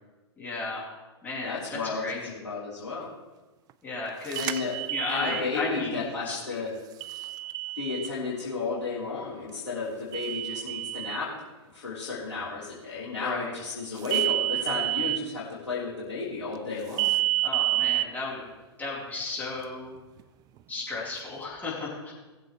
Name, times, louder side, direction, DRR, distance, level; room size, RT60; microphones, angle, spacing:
voice 1, 0.4-0.9 1.2-2.2 3.8-4.6 4.9-6.6 13.2-13.5 17.4-18.5 18.8-19.9 20.7-22.1, left 3 dB, 10° left, -6 dB, 4.0 m, -34 dB
voice 2, 1.4-3.1 4.4-4.8 5.1-6.7 7.8-11.4 11.7-17.1, left 4 dB, 75° left, -8 dB, 3.5 m, -33 dB
sound 1, 4.3-5.4 7.0-8.1 10.1-11.2 14.0-15.2 17.0-18.0, right 17 dB, 25° right, 0.4 m, -28 dB
19.0 x 7.6 x 3.3 m, 1.2 s
figure-of-eight pair, 100°, 15 cm